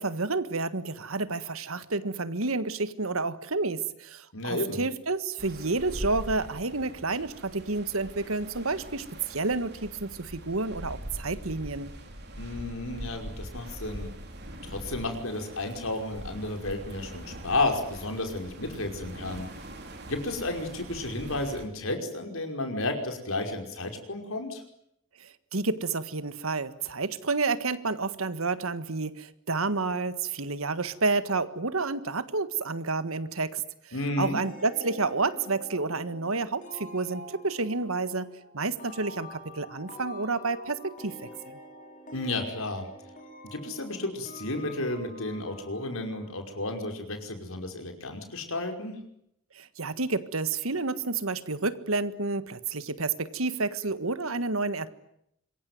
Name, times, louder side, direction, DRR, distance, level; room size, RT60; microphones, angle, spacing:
voice 1, 0.0-11.9 25.2-38.3 38.5-41.1 41.4-41.6 49.5-54.9, right 3 dB, 75° right, 13 dB, 1.7 m, -30 dB
voice 2, 4.3-4.8 12.4-14.1 14.6-19.5 20.1-24.6 33.9-34.4 42.1-42.9 43.5-48.9, left 2 dB, 75° left, 5 dB, 5.4 m, -32 dB
sound 1, 5.4-21.7, right 1 dB, 50° right, 4.7 m, -42 dB
sound 2, 34.4-46.8, equal, 35° left, 6.0 m, -47 dB
26.0 x 23.0 x 9.5 m, 0.75 s
head